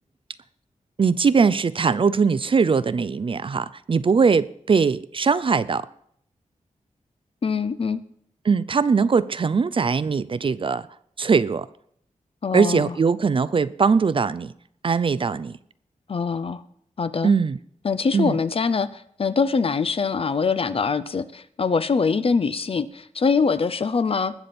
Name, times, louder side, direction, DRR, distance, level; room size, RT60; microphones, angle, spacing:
voice 1, 1.0-5.9 8.4-10.9 11.2-11.7 12.5-14.5 14.8-15.5 17.2-17.6 18.1-18.4, right 5 dB, 45° right, 0.4 m, -21 dB
voice 2, 7.4-8.0 12.4-12.9 16.1-16.6 17.0-17.3 17.8-24.3, left 5 dB, 45° left, 0.6 m, -23 dB
20.0 x 7.0 x 4.2 m
wide cardioid pair, 120°, 13 cm